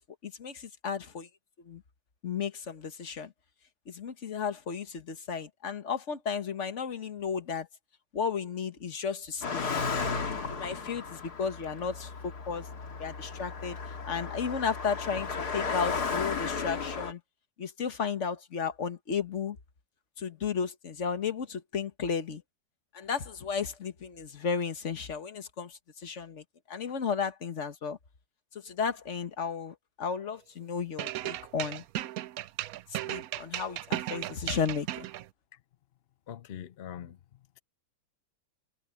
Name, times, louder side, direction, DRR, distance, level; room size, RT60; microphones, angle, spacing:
voice 1, 0.2-1.3 1.6-1.8 2.2-3.3 3.9-7.7 8.1-9.8 10.5-12.7 13.0-13.8 14.1-17.2 17.6-19.6 20.2-22.4 22.9-28.0 28.6-31.8 32.9-35.1, left 6 dB, 40° left, 1.5 m, -34 dB
Car passing by, 9.4-17.1, left 5 dB, 60° left, 2.4 m, -34 dB
sound 1, 31.0-35.3, right 14 dB, 75° right, 0.8 m, -35 dB
voice 2, 36.3-37.2, left 10 dB, 80° left, 0.5 m, -42 dB
omnidirectional pair, 2.0 m